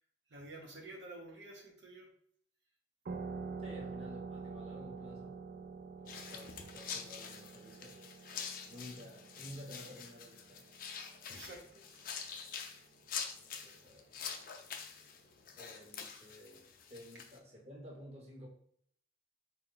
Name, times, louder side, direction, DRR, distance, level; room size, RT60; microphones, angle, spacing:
voice 1, 0.3-2.1 11.3-12.1, right 2 dB, 70° right, -1 dB, 0.9 m, -50 dB
sound 1, 3.1-12.3, right 4 dB, 50° right, 0.4 m, -47 dB
voice 2, 3.6-5.4 6.0-8.2 8.6-10.6 13.6-14.2 15.5-18.5, equal, 30° right, -2 dB, 0.9 m, -52 dB
sound 2, 6.1-17.4, left 6 dB, 50° left, 0.4 m, -46 dB
4.1 x 2.3 x 3.8 m, 0.66 s
head